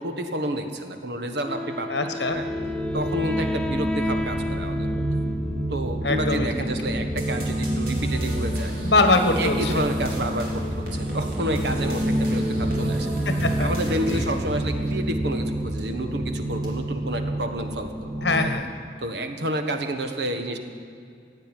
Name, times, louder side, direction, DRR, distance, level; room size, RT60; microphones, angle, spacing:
voice 1, 0.0-2.5 2.9-5.0 5.7-8.7 9.4-10.6 10.9-13.1 13.6-18.5 19.0-20.6, right 1 dB, 75° right, 6 dB, 1.4 m, -30 dB
Wind instrument woodwind instrument, 1.4-6.2, left 2 dB, 5° left, 0.4 m, -32 dB
voice 2, 1.9-2.4 6.0-6.7 8.8-9.9 13.3-13.7 14.1-14.3 18.2-18.7, left 2 dB, 80° left, 7 dB, 1.4 m, -23 dB
sound 1, 2.3-18.5, right 1 dB, 25° right, 2.4 m, -28 dB
sound 2, 7.2-14.6, right 1 dB, 55° right, 4.0 m, -38 dB
15.5 x 9.2 x 9.2 m, 2.4 s
head